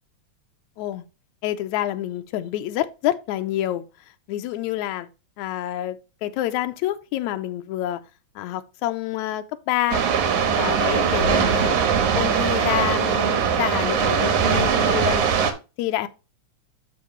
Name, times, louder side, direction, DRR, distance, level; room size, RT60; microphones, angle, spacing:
voice 1, 1.4-3.8 4.3-5.1 5.4-8.0 8.4-10.0 10.6-11.8 12.1-15.2 15.8-16.1, left 13 dB, 75° left, 2.0 m, -27 dB
sound 1, 9.9-15.5, right 7 dB, 75° right, 2.5 m, -21 dB
12.5 x 4.4 x 3.1 m
omnidirectional pair, 3.5 m